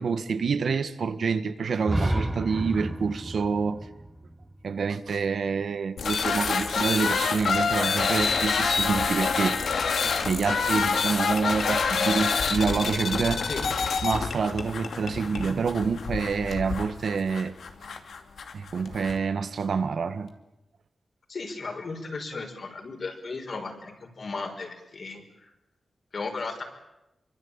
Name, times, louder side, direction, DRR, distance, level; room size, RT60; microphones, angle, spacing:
voice 1, 0.0-3.9 4.6-9.6 10.2-13.4 14.0-17.5 18.5-20.3, right 5 dB, 70° right, 1.7 m, -27 dB
sound 1, 1.8-5.7, right 1 dB, 15° right, 1.9 m, -31 dB
sound 2, 6.0-19.2, left 5 dB, 85° left, 2.6 m, -27 dB
voice 2, 21.3-25.2 26.1-26.6, left 3 dB, 55° left, 5.8 m, -35 dB
26.0 x 24.5 x 9.0 m
wide cardioid pair, 95°, 0 cm